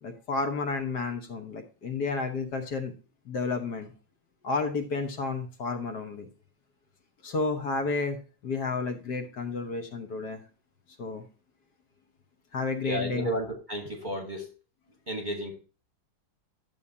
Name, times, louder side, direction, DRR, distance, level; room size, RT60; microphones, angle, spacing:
voice 1, 0.0-2.9 3.3-3.9 4.4-6.3 7.2-8.2 8.4-10.4 11.0-11.2 12.5-13.3, left 4 dB, 60° left, 1.6 m, -31 dB
voice 2, 12.8-14.5 15.1-15.6, right 1 dB, 30° right, 1.1 m, -33 dB
11.0 x 7.0 x 2.7 m
omnidirectional pair, 2.2 m